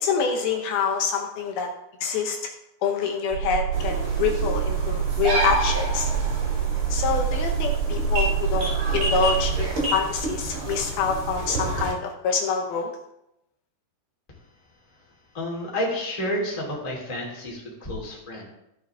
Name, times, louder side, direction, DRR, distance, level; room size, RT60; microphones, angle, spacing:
voice 1, 0.0-1.7 2.0-2.4 2.8-6.1 6.9-12.9, left 5 dB, 75° left, 3 dB, 2.7 m, -26 dB
sound 1, 3.3-9.7, right 8 dB, 80° right, 2.7 m, -26 dB
sound 2, 3.7-11.9, right 2 dB, 40° right, 2.5 m, -29 dB
voice 2, 15.3-18.5, left 1 dB, 15° left, -2 dB, 1.6 m, -30 dB
14.0 x 6.8 x 3.5 m, 0.84 s
omnidirectional pair, 4.6 m